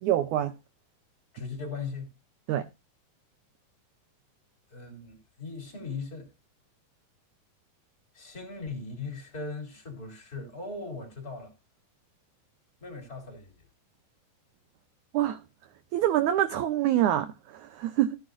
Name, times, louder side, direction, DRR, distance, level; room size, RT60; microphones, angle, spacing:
voice 1, 0.0-0.5 2.5-2.6 15.1-15.4 15.9-18.2, right 12 dB, 80° right, 1.7 m, -26 dB
voice 2, 1.3-2.1 4.7-6.3 8.1-11.5 12.8-13.5, left 4 dB, 25° left, 3.6 m, -39 dB
16.5 x 9.7 x 2.6 m
omnidirectional pair, 4.3 m